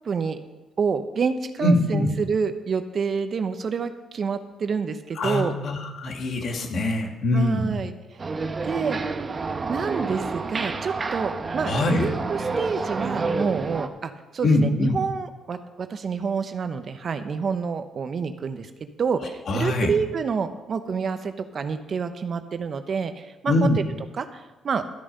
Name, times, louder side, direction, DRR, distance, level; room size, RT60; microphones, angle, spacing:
voice 1, 0.0-0.4 0.8-5.5 7.3-8.2 8.6-9.0 9.7-23.7 24.1-24.8, right 5 dB, 50° right, 9 dB, 0.9 m, -28 dB
voice 2, 1.6-2.1 5.2-7.7 11.7-12.1 14.4-15.0 19.5-19.9 23.5-23.8, left 2 dB, 60° left, 3 dB, 2.1 m, -23 dB
sound 1, 8.2-13.9, right 3 dB, 35° right, 0.9 m, -29 dB
12.5 x 8.7 x 5.4 m, 1.1 s
cardioid pair, 90°, 0 cm